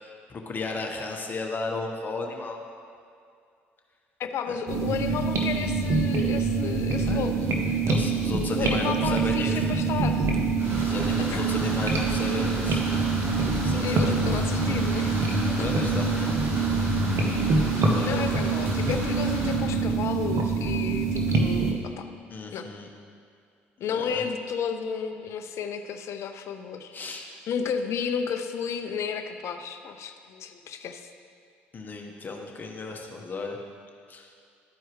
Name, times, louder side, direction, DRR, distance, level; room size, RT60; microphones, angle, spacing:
voice 1, 0.0-2.6 4.5-4.6 7.1-7.4 7.9-9.6 10.8-12.9 13.6-14.2 15.6-16.3 17.9-18.5 22.3-22.9 23.9-24.3 26.9-27.3 31.7-33.6 34.1-34.3, left 3 dB, 35° left, 1 dB, 1.2 m, -34 dB
voice 2, 4.2-7.4 7.7-7.8 8.6-10.3 11.3-11.5 13.8-15.1 18.0-22.1 22.5-22.7 23.8-26.9 27.5-31.0, left 6 dB, 60° left, 6 dB, 0.6 m, -32 dB
sound 1, 4.7-21.7, right 4 dB, 60° right, 1.0 m, -25 dB
sound 2, 10.6-19.6, right 1 dB, 45° right, 1.7 m, -36 dB
12.5 x 4.6 x 3.1 m, 2.3 s
hypercardioid pair, 65°, 5 cm